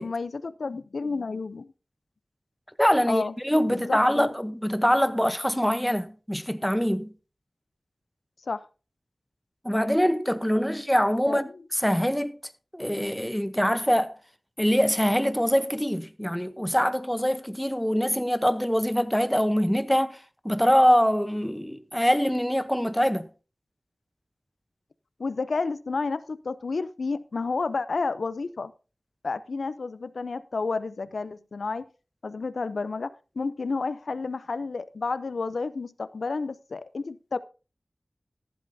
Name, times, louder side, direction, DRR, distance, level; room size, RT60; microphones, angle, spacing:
voice 1, 0.0-1.7 3.1-3.3 3.7-4.3 8.5-8.7 11.3-11.4 25.2-28.7 29.2-31.9 32.2-37.4, left 4 dB, 90° left, 0.6 m, -31 dB
voice 2, 2.8-7.1 9.6-12.4 12.7-14.1 14.6-20.2 20.4-23.3, equal, 5° left, 0.8 m, -24 dB
14.5 x 11.0 x 2.7 m
wide cardioid pair, 75°, 0 cm